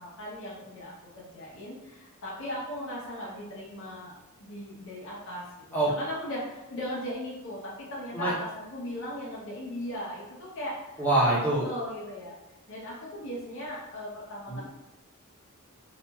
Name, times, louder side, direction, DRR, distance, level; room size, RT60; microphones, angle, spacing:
voice 1, 0.0-4.1 4.4-11.0 11.6-12.4 12.7-14.6, equal, 60° left, -6 dB, 0.7 m, -38 dB
voice 2, 11.0-11.7 14.5-14.6, right 2 dB, 10° left, -7 dB, 0.7 m, -24 dB
2.9 x 2.4 x 2.2 m, 0.95 s
head